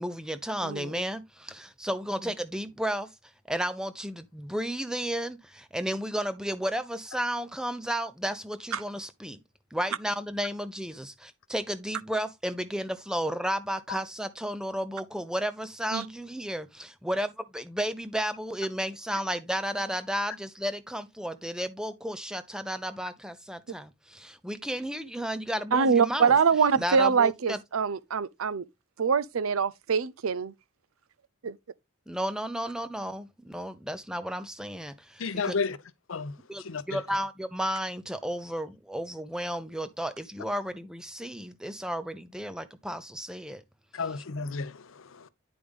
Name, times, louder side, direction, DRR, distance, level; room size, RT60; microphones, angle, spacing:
voice 1, 0.0-3.1 3.5-9.4 9.7-26.3 26.8-27.6 32.1-35.5 36.5-43.6, equal, 5° right, 0.6 m, -33 dB
voice 2, 25.7-28.6 29.0-30.5 31.4-31.6, right 6 dB, 80° right, 0.5 m, -24 dB
voice 3, 35.2-35.8 36.1-37.0 43.9-45.3, left 4 dB, 70° left, 0.7 m, -33 dB
9.6 x 5.0 x 3.5 m
head